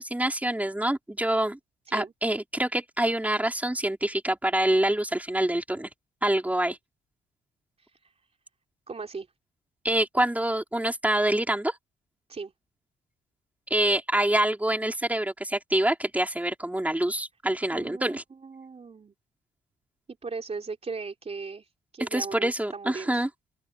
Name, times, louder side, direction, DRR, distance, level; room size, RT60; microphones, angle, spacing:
voice 1, 0.0-1.6 1.9-5.9 6.2-6.8 9.8-11.8 13.7-18.2 22.0-23.3, right 1 dB, 5° right, 4.6 m, -26 dB
voice 2, 7.8-8.1 8.9-9.3 12.3-12.5 17.7-19.1 20.2-23.3, right 4 dB, 30° right, 3.8 m, -38 dB
open air
cardioid pair, 90°, 20 cm